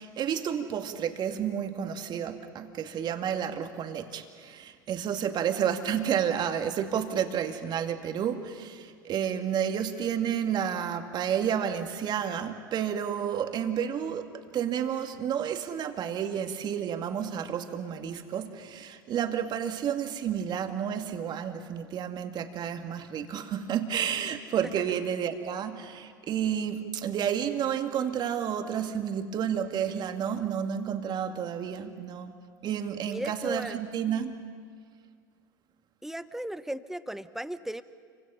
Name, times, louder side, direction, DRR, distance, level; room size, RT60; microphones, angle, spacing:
voice 1, 0.0-32.3 32.6-34.3, right 8 dB, 40° right, 6 dB, 2.1 m, -31 dB
voice 2, 33.1-33.8 36.0-37.8, right 1 dB, 5° right, 13 dB, 1.0 m, -36 dB
29.5 x 24.5 x 5.7 m, 2.1 s
hypercardioid pair, 75°, 11 cm